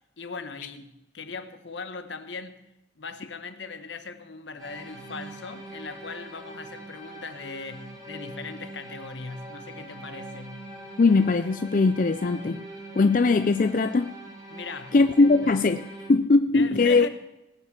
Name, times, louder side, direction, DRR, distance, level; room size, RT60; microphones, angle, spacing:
voice 1, 0.2-2.7 3.0-10.7 14.5-15.0 16.5-17.1, left 4 dB, 75° left, 1.2 m, -39 dB
sound 1, 4.6-16.1, right 1 dB, 20° right, 2.7 m, -43 dB
voice 2, 11.0-12.6 13.0-14.1 14.9-17.1, left 3 dB, 45° left, 0.4 m, -20 dB
18.5 x 6.4 x 7.3 m
head